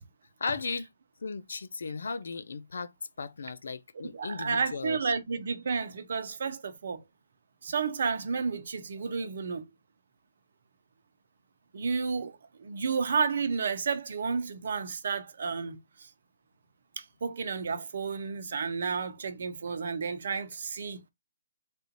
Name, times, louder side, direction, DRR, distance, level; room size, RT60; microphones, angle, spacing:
voice 1, 0.4-0.9 1.2-5.1, left 4 dB, 70° left, 0.4 m, -36 dB
voice 2, 4.1-7.0 7.6-9.7 11.7-16.1 17.0-21.0, right 5 dB, 60° right, 0.7 m, -31 dB
3.4 x 2.5 x 2.8 m
figure-of-eight pair, 140°, 0 cm